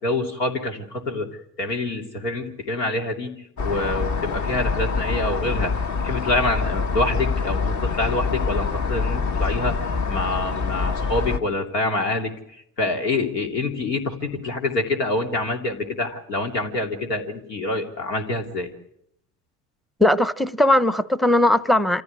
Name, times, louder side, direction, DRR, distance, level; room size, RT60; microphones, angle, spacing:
voice 1, 0.0-3.3 3.6-5.7 6.0-12.3 12.8-18.7, left 2 dB, 80° left, 3 dB, 3.0 m, -26 dB
sound 1, 3.6-11.4, left 4 dB, 35° left, 1.5 m, -25 dB
voice 2, 20.0-22.0, left 1 dB, ahead, 17 dB, 0.8 m, -18 dB
26.5 x 15.0 x 9.5 m, 0.75 s
figure-of-eight pair, 60°, 48 cm